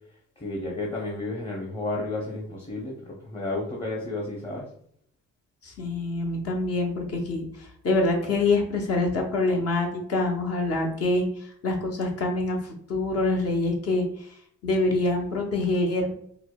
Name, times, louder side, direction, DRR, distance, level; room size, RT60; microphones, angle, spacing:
voice 1, 0.4-4.6, left 2 dB, 15° left, -3 dB, 0.8 m, -32 dB
voice 2, 5.6-14.3 14.6-16.1, left 2 dB, 50° left, 1 dB, 0.8 m, -26 dB
4.6 x 2.0 x 2.3 m, 0.65 s
cardioid pair, 90°, 30 cm